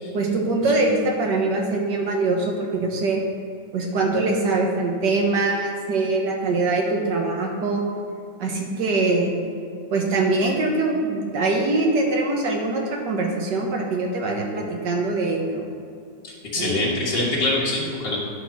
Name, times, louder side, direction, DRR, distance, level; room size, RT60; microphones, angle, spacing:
voice 1, 0.1-3.2 3.7-7.8 8.4-9.3 9.9-15.7 16.6-16.8, right 3 dB, 70° right, 0 dB, 1.8 m, -23 dB
voice 2, 16.2-18.2, left 2 dB, 75° left, -6 dB, 2.1 m, -24 dB
11.0 x 4.2 x 6.0 m, 2.4 s
omnidirectional pair, 2.0 m